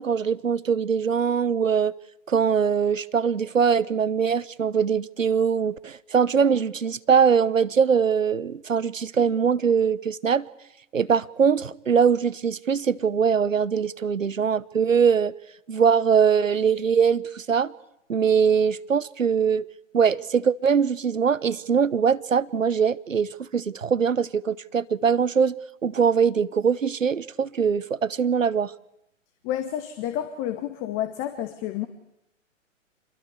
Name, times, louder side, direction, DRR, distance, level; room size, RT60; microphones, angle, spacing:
voice 1, 0.0-1.9 2.3-10.5 10.9-15.3 15.7-17.7 18.1-19.7 19.9-25.6 25.8-28.7, right 6 dB, 90° right, 1.0 m, -22 dB
voice 2, 29.4-31.9, left 11 dB, 35° left, 2.2 m, -30 dB
26.5 x 22.0 x 8.3 m
figure-of-eight pair, 115°, 38 cm